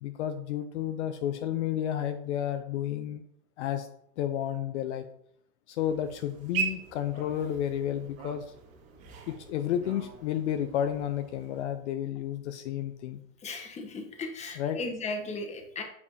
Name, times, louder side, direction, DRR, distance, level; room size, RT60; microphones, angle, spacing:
voice 1, 0.0-3.2 3.6-3.9 4.2-5.1 5.7-8.5 9.3-13.2 14.6-14.8, left 10 dB, 55° left, 8 dB, 0.7 m, -31 dB
sound 1, 5.8-11.6, right 6 dB, 35° right, 1.7 m, -40 dB
voice 2, 13.4-15.8, left 3 dB, 15° left, 4 dB, 1.1 m, -36 dB
8.3 x 4.7 x 2.7 m, 0.69 s
hypercardioid pair, 120°, 41 cm